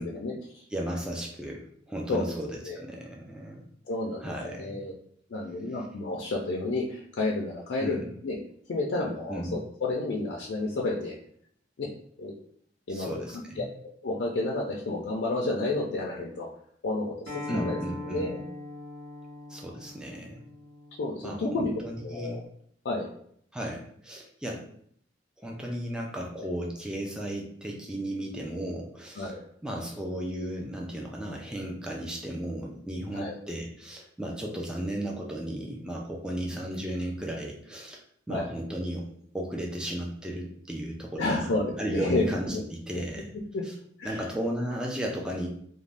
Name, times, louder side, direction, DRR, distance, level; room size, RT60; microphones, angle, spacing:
voice 1, 0.0-0.6 2.1-2.3 2.7-2.8 3.9-4.9 5.3-8.4 8.7-11.1 11.8-11.9 12.2-12.3 12.9-13.1 13.6-13.7 14.0-16.5 16.8-17.8 18.1-18.4 21.0-21.7 22.0-22.4 22.8-23.1 29.2-29.4 33.1-33.4 38.3-38.5 41.2-42.3 42.5-42.6 43.5-43.6 44.0-44.2, left 2 dB, 75° left, -2 dB, 0.4 m, -30 dB
voice 2, 0.7-3.6 4.2-4.8 7.8-8.1 9.3-9.6 12.9-13.7 17.5-18.3 19.5-20.4 21.2-22.4 23.5-24.6 25.4-29.4 29.6-39.1 39.3-41.5 41.8-43.3 43.6-43.7 44.0-45.5, right 1 dB, 5° right, -1 dB, 0.3 m, -35 dB
Acoustic guitar, 17.3-22.5, left 2 dB, 85° right, 0.7 m, -42 dB
2.5 x 2.1 x 3.2 m, 0.66 s
head